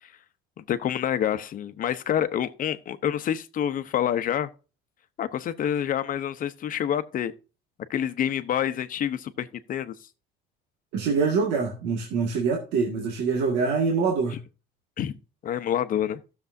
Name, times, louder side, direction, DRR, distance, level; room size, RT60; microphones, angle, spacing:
voice 1, 0.6-4.5 5.2-7.3 7.9-9.9 15.0-15.1 15.4-16.2, left 10 dB, 55° left, 0.9 m, -27 dB
voice 2, 10.9-14.4, right 5 dB, 90° right, 2.0 m, -25 dB
15.5 x 6.9 x 2.7 m
cardioid pair, 110°, 17 cm